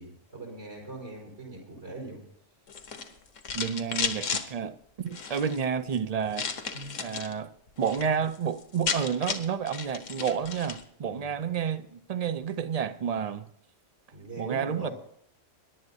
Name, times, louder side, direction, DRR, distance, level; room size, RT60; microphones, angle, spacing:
voice 1, 0.0-2.2 6.7-6.9 11.0-11.3 14.1-14.9, right 2 dB, 75° right, 4.5 m, -41 dB
sound 1, 2.7-4.4 5.1-5.6 6.3-7.3 7.7-8.1 8.3-8.4 8.6-10.8, left 6 dB, 80° left, 1.4 m, -33 dB
voice 2, 3.5-6.5 7.0-7.5 7.8-13.5 14.4-14.9, right 7 dB, 55° right, 0.4 m, -30 dB
22.5 x 11.0 x 2.8 m
omnidirectional pair, 1.3 m